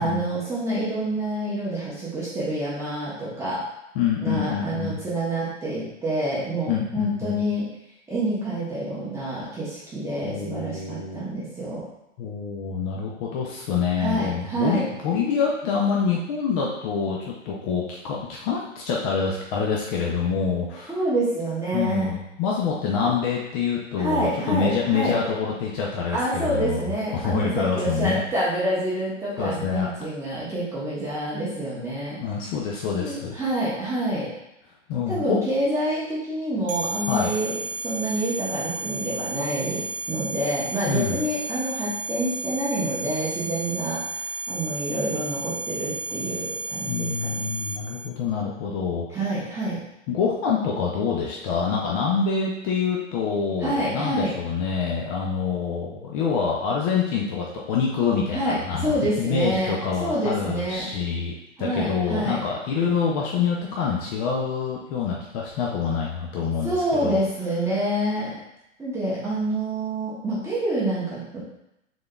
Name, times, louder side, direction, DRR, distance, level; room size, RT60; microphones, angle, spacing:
voice 1, 0.0-3.6 4.2-7.7 8.1-11.9 14.0-14.9 20.9-22.2 24.0-25.2 26.1-32.2 33.0-34.3 35.1-47.4 49.1-49.8 53.6-54.3 58.3-60.9 61.6-62.4 66.6-68.4 68.8-71.5, right 1 dB, 5° right, -10 dB, 1.0 m, -27 dB
voice 2, 3.9-5.0 6.7-7.4 10.2-11.3 12.2-20.9 21.7-26.9 27.1-28.2 29.4-29.9 32.2-33.4 34.9-35.4 37.1-37.3 40.9-41.2 46.9-49.1 50.1-61.3 61.6-66.7 67.0-67.2, left 6 dB, 30° left, -2 dB, 0.5 m, -26 dB
sound 1, 36.7-48.1, right 2 dB, 55° right, 0.5 m, -32 dB
5.0 x 3.9 x 2.3 m, 0.87 s
hypercardioid pair, 130°, 38 cm